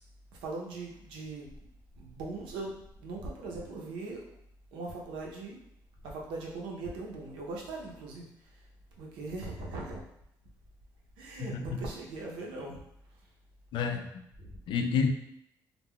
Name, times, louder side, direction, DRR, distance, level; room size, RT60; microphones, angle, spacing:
voice 1, 0.4-1.5 2.0-4.2 4.7-5.6 6.0-8.7 9.0-10.0 11.2-12.8 13.1-13.3 14.4-14.6, right 3 dB, 85° right, -2 dB, 0.6 m, -40 dB
voice 2, 11.4-11.8 13.7-14.1 14.7-15.1, left 6 dB, 70° left, 6 dB, 0.3 m, -29 dB
2.2 x 2.2 x 3.5 m, 0.75 s
cardioid pair, 80°, 8 cm